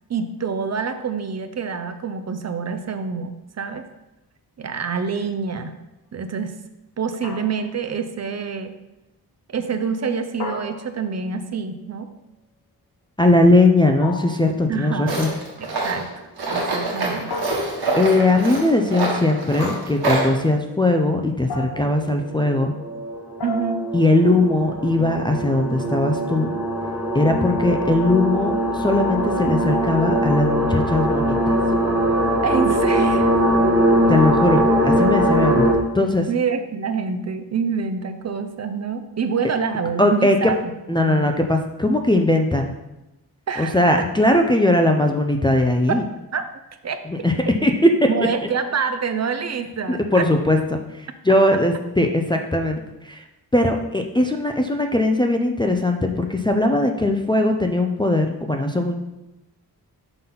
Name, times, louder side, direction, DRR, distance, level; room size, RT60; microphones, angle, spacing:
voice 1, 0.1-3.9 4.6-5.7 6.1-6.6 7.0-8.7 9.5-12.1 14.7-15.3 15.6-16.1 16.5-17.3 23.4-23.8 32.4-33.3 36.3-40.5 41.0-41.3 43.5-44.1 45.9-46.0 46.3-46.4 46.8-47.0 48.1-50.3, right 6 dB, 45° right, 9 dB, 0.5 m, -26 dB
sound 1, 7.2-7.9 10.4-11.3 14.0-14.6 17.3-18.0 19.6-20.1 21.5-22.1 23.4-24.0, left 2 dB, 85° left, 1.1 m, -33 dB
voice 2, 13.2-15.3 17.9-22.7 23.9-26.5 27.1-31.4 34.1-35.7 35.9-36.3 40.0-40.5 40.9-42.7 43.6-46.0 47.1-47.3 47.6-47.7 48.0-48.1 49.9-53.2 53.5-59.0, left 2 dB, 15° left, 3 dB, 0.3 m, -19 dB
Tools, 15.1-20.3, right 2 dB, 85° right, 1.5 m, -25 dB
sound 2, 22.1-35.7, right 1 dB, ahead, 1.1 m, -21 dB
5.8 x 3.8 x 5.5 m, 0.97 s
wide cardioid pair, 155°, 38 cm